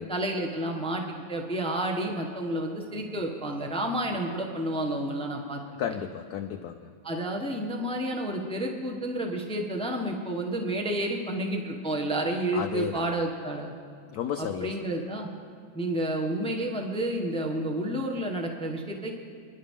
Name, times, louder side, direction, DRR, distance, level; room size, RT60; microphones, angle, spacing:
voice 1, 0.1-5.8 7.0-13.7 14.4-15.3 15.7-19.1, right 1 dB, 5° left, 2 dB, 0.8 m, -30 dB
voice 2, 5.8-6.9 12.5-13.2 14.1-14.8, left 8 dB, 70° left, 7 dB, 0.9 m, -33 dB
27.0 x 11.0 x 3.7 m, 2.4 s
omnidirectional pair, 2.2 m